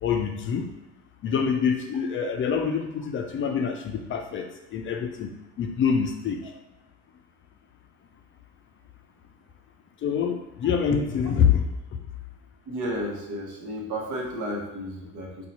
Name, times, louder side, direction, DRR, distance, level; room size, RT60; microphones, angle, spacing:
voice 1, 0.0-0.7 1.2-6.5 10.0-11.7 11.9-12.0, left 7 dB, 40° left, 4 dB, 0.4 m, -26 dB
voice 2, 12.7-15.5, equal, 65° right, 0 dB, 1.0 m, -32 dB
2.7 x 2.3 x 4.1 m, 0.92 s
supercardioid pair, 85°, 33 cm